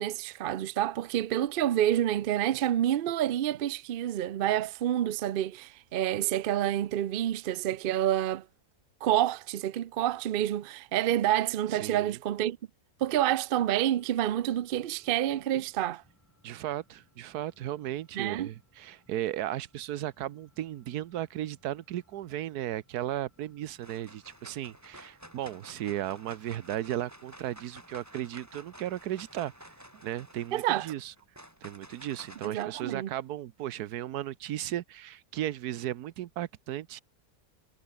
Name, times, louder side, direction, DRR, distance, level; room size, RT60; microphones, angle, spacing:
voice 1, 0.0-8.4 9.0-12.6 13.0-16.0 18.2-18.5 30.5-30.9 32.4-33.1, right 12 dB, 65° right, 0.5 m, -28 dB
voice 2, 11.7-12.2 16.4-29.5 30.0-31.1 31.6-37.0, right 12 dB, 85° right, 1.3 m, -35 dB
sound 1, 13.7-30.4, equal, 10° left, 5.3 m, -68 dB
sound 2, 23.2-23.5 23.8-32.6, equal, 10° right, 6.7 m, -51 dB
omnidirectional pair, 1.6 m